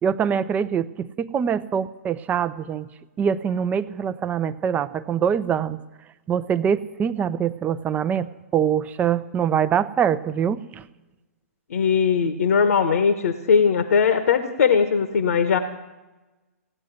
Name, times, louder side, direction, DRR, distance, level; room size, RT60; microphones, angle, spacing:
voice 1, 0.0-2.9 3.2-5.8 6.3-10.8, right 8 dB, 20° right, 14 dB, 0.6 m, -24 dB
voice 2, 11.7-15.6, left 6 dB, 70° left, 10 dB, 1.2 m, -19 dB
16.5 x 9.4 x 9.3 m, 1.1 s
hypercardioid pair, 125°, 8 cm